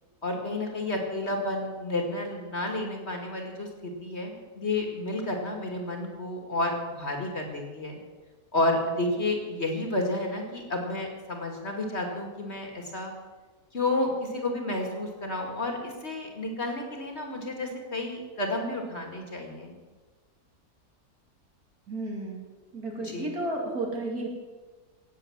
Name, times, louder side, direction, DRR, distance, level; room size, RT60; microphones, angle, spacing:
voice 1, 0.2-8.0 8.5-13.1 13.7-19.8 23.0-23.3, left 2 dB, 40° left, 2 dB, 2.5 m, -31 dB
voice 2, 21.9-22.4 22.7-24.3, right 2 dB, 65° right, 0 dB, 3.2 m, -32 dB
17.5 x 8.0 x 7.2 m, 1.3 s
omnidirectional pair, 1.7 m